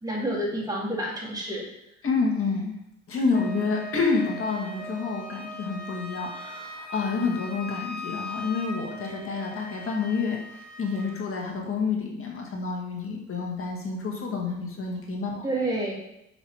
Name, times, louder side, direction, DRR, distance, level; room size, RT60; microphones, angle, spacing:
voice 1, 0.0-1.6 3.1-3.5 15.4-15.9, right 1 dB, 15° right, -3 dB, 2.3 m, -28 dB
voice 2, 2.0-2.7 3.1-15.5, left 4 dB, 45° left, 0 dB, 1.7 m, -29 dB
Wind instrument woodwind instrument, 3.3-11.2, left 1 dB, 5° left, 1.2 m, -40 dB
5.7 x 4.0 x 4.6 m, 0.84 s
cardioid pair, 90°, 30 cm